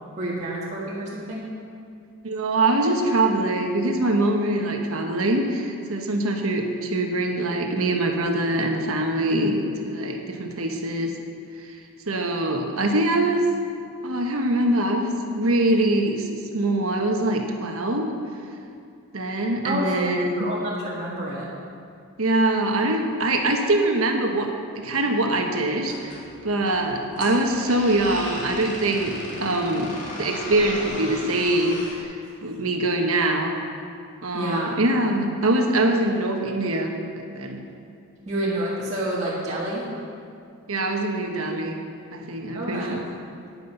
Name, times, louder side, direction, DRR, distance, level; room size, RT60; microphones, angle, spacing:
voice 1, 0.2-1.5 19.6-21.5 34.3-34.7 38.3-39.9 42.5-43.0, right 1 dB, 30° right, -8 dB, 1.7 m, -29 dB
voice 2, 2.2-11.1 12.1-13.4 14.0-18.1 19.1-20.5 22.2-26.2 26.4-29.9 30.2-32.1 32.4-33.6 34.2-37.6 40.7-41.8 42.1-43.0, right 1 dB, 75° right, 3 dB, 1.2 m, -23 dB
sound 1, 25.8-32.0, left 1 dB, 35° left, 2.2 m, -37 dB
9.8 x 9.5 x 5.6 m, 2.3 s
head